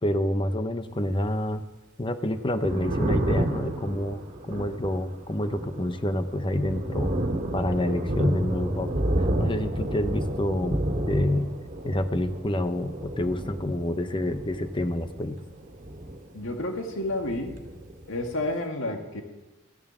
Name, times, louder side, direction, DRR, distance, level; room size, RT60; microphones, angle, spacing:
voice 1, 0.0-1.6 2.0-7.1 7.5-8.9 9.4-11.5 11.8-15.4, left 1 dB, 25° left, 10 dB, 0.7 m, -28 dB
Thunder, 2.4-16.9 17.1-18.4, right 1 dB, 40° right, 2.0 m, -31 dB
voice 2, 16.3-17.6 18.1-19.2, left 1 dB, 70° left, 3 dB, 2.1 m, -30 dB
15.0 x 11.0 x 7.2 m, 1.1 s
head